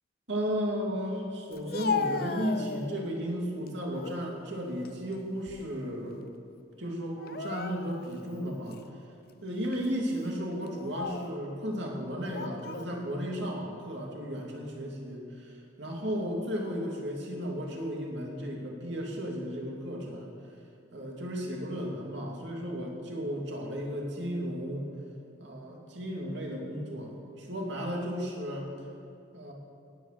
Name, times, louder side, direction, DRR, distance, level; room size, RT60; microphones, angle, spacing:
voice 1, 0.3-6.2 6.8-8.8 9.4-20.3 20.9-24.9 25.4-28.7 29.3-29.5, equal, 65° right, -1 dB, 2.8 m, -34 dB
Speech, 1.5-3.2 3.7-4.2 4.7-5.9 6.2-6.4 7.2-8.1 8.7-8.8 9.6-9.9 10.7-11.4 12.2-12.9, left 5 dB, 50° left, 0.6 m, -36 dB
18.0 x 9.6 x 6.0 m, 2.6 s
head